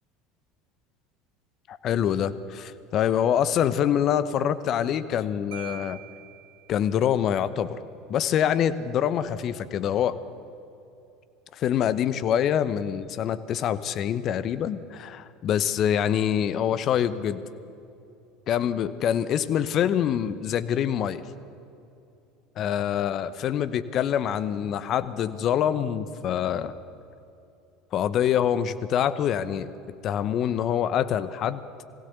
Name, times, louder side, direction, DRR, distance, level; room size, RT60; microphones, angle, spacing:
voice 1, 1.7-6.0 6.7-7.8 8.1-10.2 11.5-17.4 18.5-21.2 22.6-26.8 27.9-29.7 30.0-31.6, left 9 dB, 45° left, 14 dB, 1.0 m, -25 dB
Marimba xylophone, 5.5-7.2, right 17 dB, 75° right, 2.6 m, -45 dB
22.0 x 16.5 x 8.1 m, 2.8 s
hypercardioid pair, 75°, 0 cm